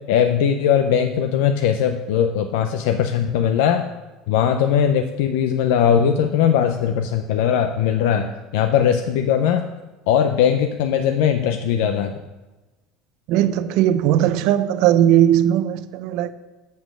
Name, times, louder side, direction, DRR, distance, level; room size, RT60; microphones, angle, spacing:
voice 1, 0.1-3.8 4.3-9.6 10.1-12.1, left 8 dB, 75° left, 0.5 m, -19 dB
voice 2, 13.3-16.3, right 11 dB, 55° right, 0.5 m, -18 dB
7.9 x 5.2 x 6.2 m
cardioid pair, 165°, 0 cm